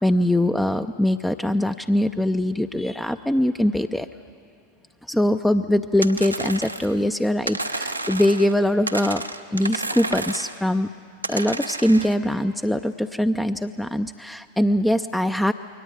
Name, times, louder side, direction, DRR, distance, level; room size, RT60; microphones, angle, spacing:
voice 1, 0.0-4.1 5.1-9.2 9.5-10.9 11.3-15.5, left 1 dB, 5° left, 9 dB, 0.5 m, -22 dB
sound 1, 6.0-7.0 7.5-8.6 8.9-10.6 11.2-12.2, right 2 dB, 85° right, 0.9 m, -31 dB
22.5 x 18.5 x 9.0 m, 2.4 s
figure-of-eight pair, 90°, 0 cm